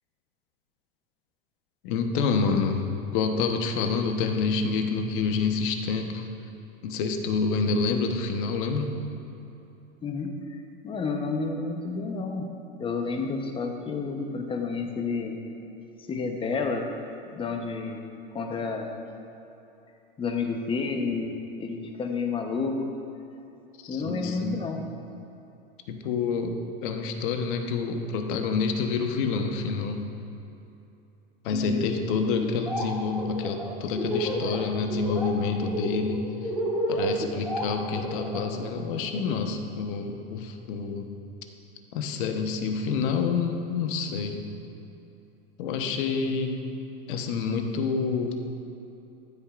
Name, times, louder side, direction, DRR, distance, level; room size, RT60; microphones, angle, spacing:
voice 1, 1.8-6.3 6.8-8.9 23.8-24.6 25.9-30.0 31.4-36.5 36.9-41.1 41.9-44.4 45.6-46.6 47.1-48.3, left 5 dB, 60° left, 5 dB, 1.1 m, -28 dB
voice 2, 10.0-10.4 10.8-12.5 12.8-15.4 16.0-16.9 17.3-18.0 18.3-19.0 20.2-21.3 21.6-23.0 23.9-24.9 31.5-31.8, left 4 dB, 20° left, 4 dB, 0.9 m, -30 dB
Laughter, 32.4-32.8 33.1-34.6 34.9-35.3 35.6-38.4, equal, ahead, 2.3 m, -30 dB
15.0 x 8.6 x 2.5 m, 2.9 s
hypercardioid pair, 125°, 30 cm